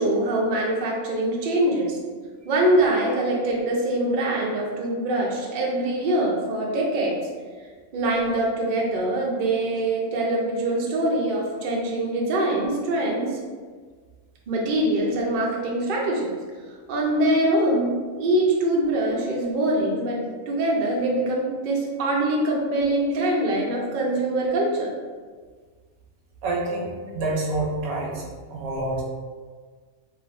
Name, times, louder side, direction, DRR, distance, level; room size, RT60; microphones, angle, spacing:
voice 1, 0.0-2.0 2.4-7.2 7.9-13.4 14.5-16.4 16.9-24.9, right 1 dB, 60° right, -2 dB, 0.5 m, -23 dB
voice 2, 26.4-28.2 28.5-29.0, right 2 dB, 85° right, -2 dB, 1.1 m, -27 dB
3.0 x 2.5 x 2.5 m, 1.5 s
omnidirectional pair, 1.5 m